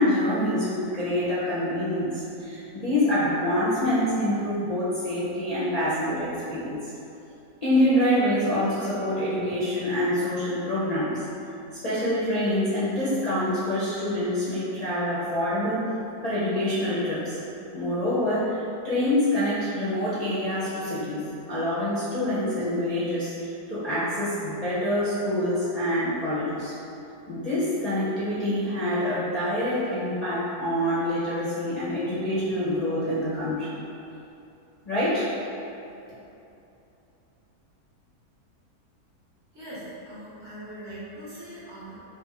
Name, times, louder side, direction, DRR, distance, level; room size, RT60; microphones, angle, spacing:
voice 1, 0.0-6.9 7.6-11.3 11.7-15.9 16.2-17.4 17.7-26.8 27.3-33.8 34.8-35.3, left 1 dB, 45° left, -11 dB, 0.5 m, -26 dB
voice 2, 39.5-42.0, right 1 dB, 50° right, -10 dB, 1.1 m, -41 dB
3.4 x 2.7 x 3.6 m, 2.9 s
omnidirectional pair, 1.7 m